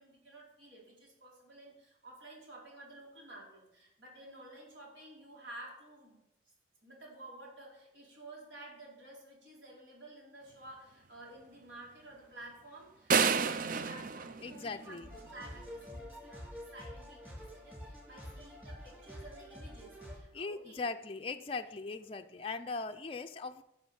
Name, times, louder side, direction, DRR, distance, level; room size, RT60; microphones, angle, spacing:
voice 1, 0.0-6.2 6.8-20.9, right 1 dB, 75° right, -3 dB, 4.7 m, -52 dB
sound 1, 13.1-15.3, right 5 dB, 45° right, 0.5 m, -30 dB
voice 2, 14.4-15.1 20.3-23.6, left 4 dB, 30° left, 7 dB, 0.4 m, -39 dB
sound 2, 15.0-20.2, left 1 dB, 10° right, 4.2 m, -47 dB
11.5 x 6.5 x 7.0 m, 0.86 s
head